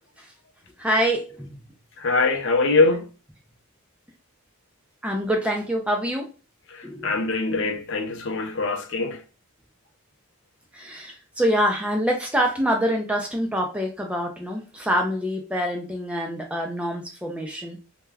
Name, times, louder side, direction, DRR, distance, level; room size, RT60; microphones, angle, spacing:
voice 1, 0.8-1.6 5.0-6.3 6.8-7.3 10.7-17.8, equal, 5° right, 0.3 m, -25 dB
voice 2, 2.0-3.1 6.7-9.2, left 3 dB, 55° left, 0.5 m, -23 dB
2.2 x 2.2 x 3.2 m
head